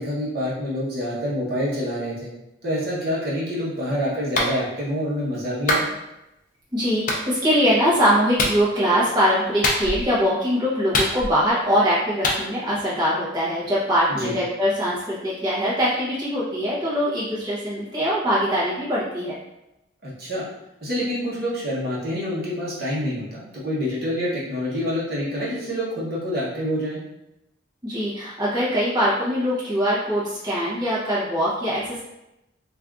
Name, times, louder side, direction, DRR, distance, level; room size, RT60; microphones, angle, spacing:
voice 1, 0.0-2.3 2.6-5.8 14.1-14.3 20.0-20.5 20.8-27.0, equal, 50° right, -7 dB, 0.9 m, -27 dB
Clapping, 4.4-4.6 5.7-5.9 7.1-7.2 8.4-8.6 9.6-10.1 10.9-11.5 12.2-12.4, left 2 dB, 40° left, 0.4 m, -22 dB
voice 2, 6.7-19.3 27.8-32.0, equal, 20° right, -9 dB, 0.8 m, -22 dB
2.5 x 2.4 x 3.5 m, 0.90 s
head